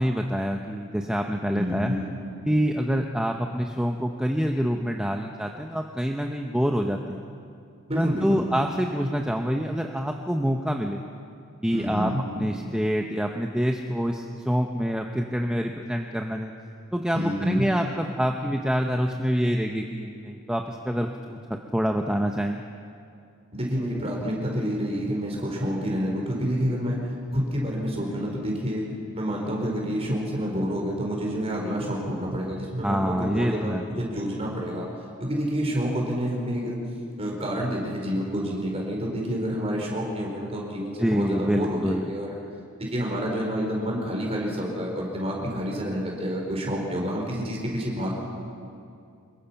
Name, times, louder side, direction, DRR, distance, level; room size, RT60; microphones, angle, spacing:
voice 1, 0.0-1.9 2.4-7.2 8.0-11.0 11.6-16.5 16.9-22.6 32.8-33.8 41.0-42.1, equal, 5° right, 2 dB, 0.8 m, -26 dB
voice 2, 1.5-2.1 7.9-8.4 11.7-12.2 17.1-17.7 23.5-27.0 27.3-28.9 29.1-34.9 35.2-36.8 37.2-42.3 42.8-48.1, equal, 25° right, -1 dB, 4.6 m, -28 dB
25.5 x 22.0 x 5.9 m, 2.4 s
head